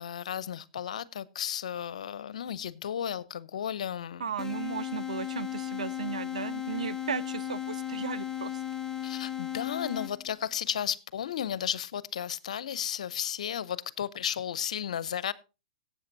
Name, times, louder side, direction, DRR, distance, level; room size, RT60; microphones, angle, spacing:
voice 1, 0.0-4.3 9.0-15.3, left 9 dB, 75° left, 0.7 m, -34 dB
voice 2, 4.2-8.6, right 7 dB, 85° right, 0.5 m, -36 dB
sound 1, 4.4-10.4, left 11 dB, 10° left, 0.8 m, -35 dB
18.0 x 8.1 x 2.7 m
hypercardioid pair, 115°, 4 cm